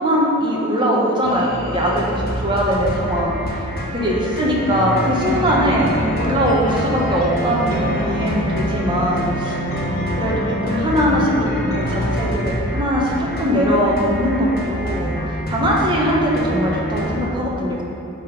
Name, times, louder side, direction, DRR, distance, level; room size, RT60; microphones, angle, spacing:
voice 1, 0.0-3.3 3.9-9.6 10.2-13.1 13.4-17.8, equal, 25° right, -4 dB, 1.3 m, -20 dB
sound 1, 1.2-17.2, equal, 45° left, 1.2 m, -27 dB
sound 2, 4.6-12.3, left 1 dB, 75° left, 1.9 m, -26 dB
10.5 x 3.9 x 5.3 m, 2.8 s
head